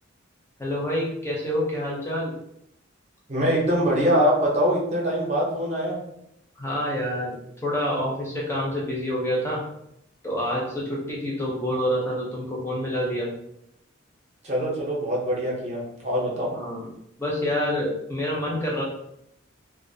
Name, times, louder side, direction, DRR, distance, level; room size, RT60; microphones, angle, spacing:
voice 1, 0.6-2.3 6.6-7.3 7.6-9.6 10.2-13.3 16.5-16.9 17.2-18.8, equal, 15° left, -4 dB, 0.5 m, -27 dB
voice 2, 3.3-6.0 14.4-16.5, equal, 35° right, -3 dB, 0.6 m, -23 dB
2.4 x 2.3 x 2.6 m, 0.77 s
head